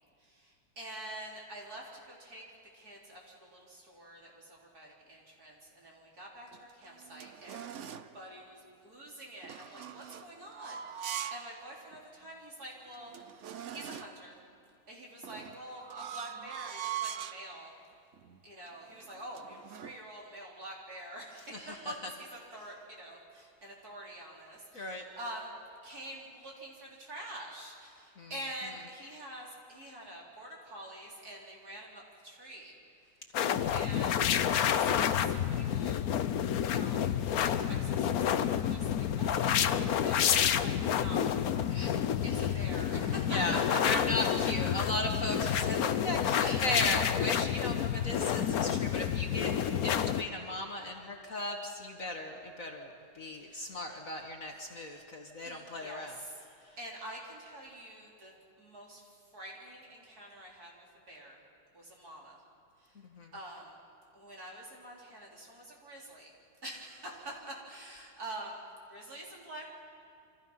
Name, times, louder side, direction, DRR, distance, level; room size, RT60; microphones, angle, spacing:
voice 1, 0.2-2.4 2.7-13.1 13.7-14.4 14.9-17.7 18.4-25.5 25.8-32.8 33.7-34.3 34.6-36.0 36.6-41.3 42.2-43.6 45.4-45.7 46.4-46.8 53.4-53.8 54.5-54.6 55.4-56.5 56.8-61.4 61.7-62.4 62.8-63.0 63.3-63.7 64.1-66.3 66.6-69.7, right 1 dB, 45° right, -3 dB, 4.3 m, -46 dB
sound 1, 6.5-8.1 9.4-11.5 11.9-12.0 12.6-12.7 12.9-14.3 15.2-17.5 18.1-18.4 18.7-20.0, right 9 dB, 75° right, 0.6 m, -42 dB
voice 2, 21.5-21.9 24.7-25.1 28.2-28.3 34.0-34.1 41.7-42.0 42.4-42.5 43.3-43.6 43.8-56.2 56.6-56.8 63.0-63.3, left 1 dB, 45° left, 2 dB, 1.8 m, -37 dB
sound 2, 33.3-50.2, left 9 dB, 60° left, 1.0 m, -29 dB
28.0 x 25.0 x 5.6 m, 2.7 s
omnidirectional pair, 2.2 m